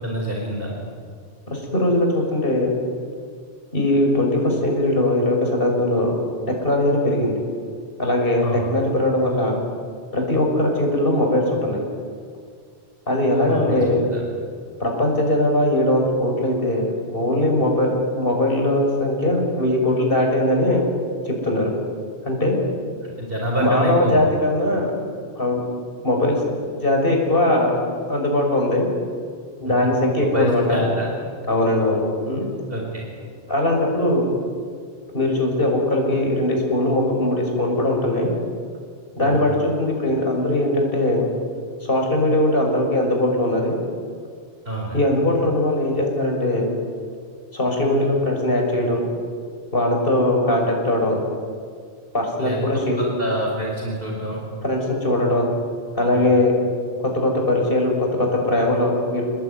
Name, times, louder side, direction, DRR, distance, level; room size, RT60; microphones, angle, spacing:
voice 1, 0.0-0.7 8.4-8.7 13.5-13.8 14.1-14.2 23.0-24.3 30.2-31.1 32.7-33.0 39.2-39.5 44.6-45.0 52.4-54.4 56.1-56.3, equal, 50° right, -1 dB, 5.0 m, -27 dB
voice 2, 1.5-2.7 3.7-6.2 6.6-7.4 8.0-9.6 10.1-11.8 13.1-14.0 14.8-20.8 21.2-21.7 22.2-22.6 23.6-24.9 25.4-25.6 26.0-26.4 26.7-27.8 28.1-28.9 29.6-30.8 31.5-32.5 33.5-34.3 35.1-38.3 39.2-41.3 41.8-43.8 44.9-46.7 47.5-49.1 49.7-51.2 52.1-53.0 54.6-55.5 55.9-56.6 57.0-59.2, left 1 dB, 50° left, 0 dB, 6.2 m, -20 dB
29.5 x 19.0 x 9.6 m, 2.1 s
omnidirectional pair, 1.2 m